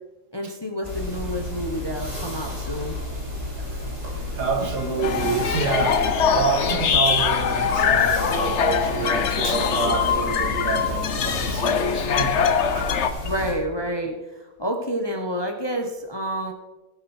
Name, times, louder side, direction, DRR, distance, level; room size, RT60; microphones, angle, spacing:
voice 1, 0.3-3.0 13.2-16.5, equal, 15° left, 3 dB, 1.0 m, -29 dB
sound 1, 0.8-13.5, left 1 dB, 15° right, 3.6 m, -32 dB
voice 2, 4.1-12.9, right 5 dB, 75° right, 4 dB, 2.2 m, -28 dB
sound 2, 4.6-6.8 8.2-10.8 12.1-13.7, left 6 dB, 75° left, 1.4 m, -35 dB
sound 3, 5.0-13.1, left 7 dB, 55° left, 0.9 m, -23 dB
17.5 x 8.1 x 4.5 m, 1.1 s
omnidirectional pair, 1.8 m